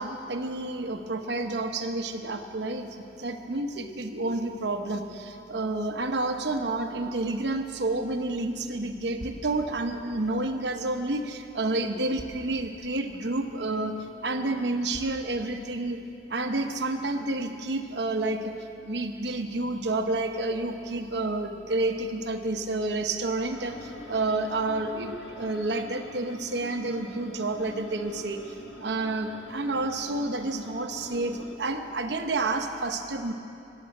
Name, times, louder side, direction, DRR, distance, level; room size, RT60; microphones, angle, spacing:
voice 1, 0.0-16.0 16.3-33.3, right 2 dB, 70° right, 6 dB, 0.9 m, -30 dB
sound 1, 9.2-9.5 11.1-11.2 12.2-12.5 13.1-13.2 13.8-13.9 14.9-15.3, equal, 5° left, 2.7 m, -44 dB
sound 2, 23.5-31.5, left 1 dB, 80° left, 1.2 m, -44 dB
13.5 x 7.7 x 9.5 m, 2.7 s
head